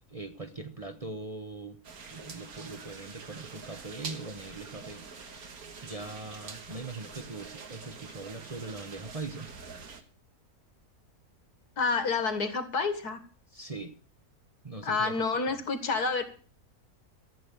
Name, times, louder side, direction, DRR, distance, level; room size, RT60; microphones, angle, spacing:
voice 1, 0.1-1.8 2.0-5.5 5.8-9.6 13.5-13.9 14.6-15.6, right 3 dB, 25° right, 6 dB, 0.9 m, -41 dB
sound 1, 1.8-10.0, right 5 dB, 70° right, 2.0 m, -45 dB
voice 2, 11.8-13.2 14.8-16.2, left 4 dB, 80° left, 9 dB, 2.3 m, -28 dB
14.0 x 8.5 x 8.3 m, 0.41 s
omnidirectional pair, 1.6 m